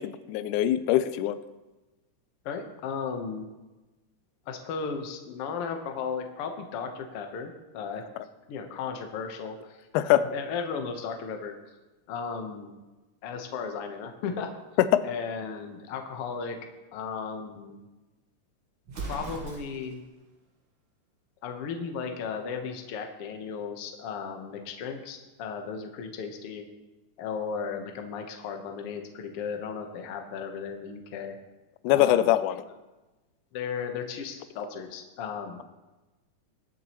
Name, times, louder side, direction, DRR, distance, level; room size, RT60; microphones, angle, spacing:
voice 1, 0.0-1.4 9.9-10.2 14.9-15.0 31.8-32.6, left 13 dB, 80° left, 13 dB, 2.0 m, -23 dB
voice 2, 2.4-3.5 4.5-8.1 8.5-11.5 12.1-12.7 13.2-14.5 15.0-16.6 16.9-17.8 18.9-20.0 21.4-26.6 27.2-31.3 31.9-32.3 33.5-35.6, left 6 dB, 60° left, 4 dB, 1.6 m, -35 dB
Explosion, 18.9-20.0, right 3 dB, 50° right, 1.6 m, -38 dB
21.0 x 7.3 x 3.0 m, 1.1 s
omnidirectional pair, 3.7 m